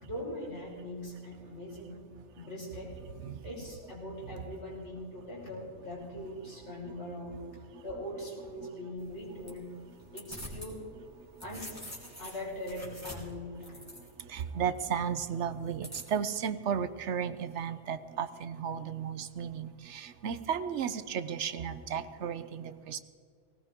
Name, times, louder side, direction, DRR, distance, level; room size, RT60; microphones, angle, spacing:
voice 1, 0.0-2.0 2.3-2.9 3.4-7.4 7.8-9.7 10.1-10.8 11.4-11.7 12.2-13.9, left 1 dB, 70° left, -4 dB, 5.1 m, -41 dB
sound 1, 9.0-10.7 11.1-14.4 15.8-16.4, equal, 15° left, 3.3 m, -46 dB
voice 2, 14.2-23.0, right 7 dB, 75° right, 12 dB, 1.0 m, -34 dB
18.5 x 18.5 x 3.7 m, 2.1 s
omnidirectional pair, 1.2 m